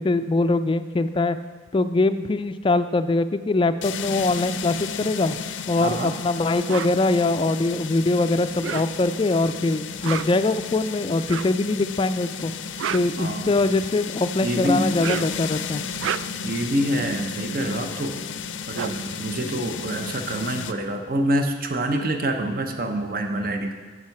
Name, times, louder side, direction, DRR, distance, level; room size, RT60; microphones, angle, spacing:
voice 1, 0.0-1.4 1.7-5.4 5.7-12.5 12.9-15.8, left 2 dB, 25° left, 11 dB, 0.3 m, -22 dB
sound 1, 3.8-20.7, left 6 dB, 80° left, 0.5 m, -33 dB
voice 2, 5.8-6.1 13.2-13.5 14.4-15.0 16.4-18.2 18.7-23.7, right 1 dB, 50° right, 5 dB, 0.9 m, -26 dB
sound 2, 6.7-7.0 8.5-9.2 9.9-10.5 11.2-11.6 12.5-13.8 14.8-15.4 15.9-16.5 18.1-18.2 18.4-20.1, right 9 dB, 85° right, 0.3 m, -32 dB
8.1 x 7.5 x 5.9 m, 1.4 s
head